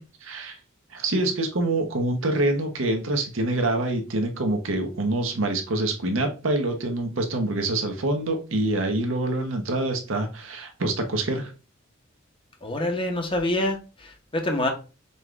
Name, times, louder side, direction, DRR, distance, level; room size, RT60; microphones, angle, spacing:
voice 1, 0.2-0.6 0.9-11.5, right 2 dB, 75° right, 0.9 m, -26 dB
voice 2, 12.6-14.7, left 1 dB, 25° left, 0.9 m, -26 dB
5.5 x 2.4 x 3.2 m
head